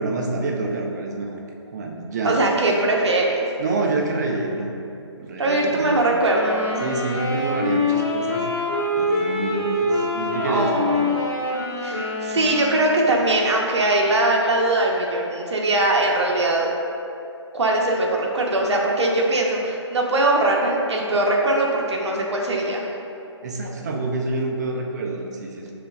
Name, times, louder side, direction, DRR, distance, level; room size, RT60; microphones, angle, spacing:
voice 1, 0.0-1.4 1.7-2.4 3.6-4.7 5.2-6.2 6.8-8.5 9.0-11.1 23.4-25.7, right 3 dB, 35° right, 1 dB, 0.5 m, -27 dB
voice 2, 2.2-3.5 5.4-6.6 10.4-11.0 11.8-16.7 17.5-22.9, right 2 dB, 70° right, -1 dB, 0.7 m, -21 dB
sound 1, 6.2-13.0, left 2 dB, 40° left, 1.1 m, -25 dB
6.6 x 2.5 x 2.3 m, 2.7 s
figure-of-eight pair, 150°, 15 cm